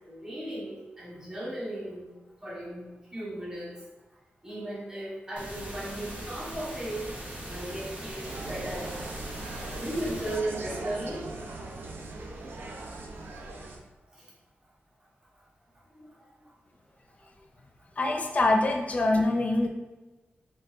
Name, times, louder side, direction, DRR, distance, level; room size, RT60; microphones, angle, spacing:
voice 1, 0.0-2.1 2.4-3.7 4.4-7.0 7.4-8.9 9.8-11.3 15.9-16.1, right 1 dB, 15° right, -8 dB, 1.5 m, -36 dB
sound 1, 5.4-10.4, right 1 dB, 35° right, 1.0 m, -40 dB
Insect, 8.2-13.8, right 2 dB, 70° right, 0.6 m, -40 dB
voice 2, 18.0-19.7, left 2 dB, 35° left, 2 dB, 0.5 m, -24 dB
4.4 x 4.2 x 2.6 m, 1.2 s
wide cardioid pair, 150°, 4 cm